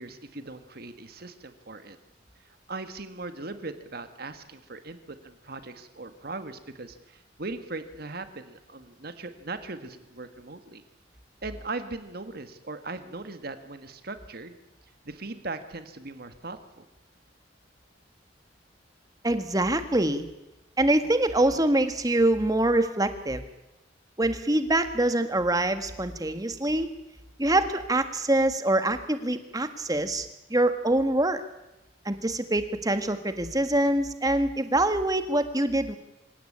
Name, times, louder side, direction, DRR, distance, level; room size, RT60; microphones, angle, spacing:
voice 1, 0.0-2.0 2.4-10.8 11.4-14.6 15.1-16.9, right 3 dB, 55° right, 9 dB, 1.6 m, -39 dB
voice 2, 19.2-20.3 20.8-23.4 24.2-26.9 27.4-31.4 32.1-35.9, right 1 dB, 20° right, 9 dB, 1.7 m, -25 dB
26.0 x 17.0 x 8.7 m, 0.95 s
head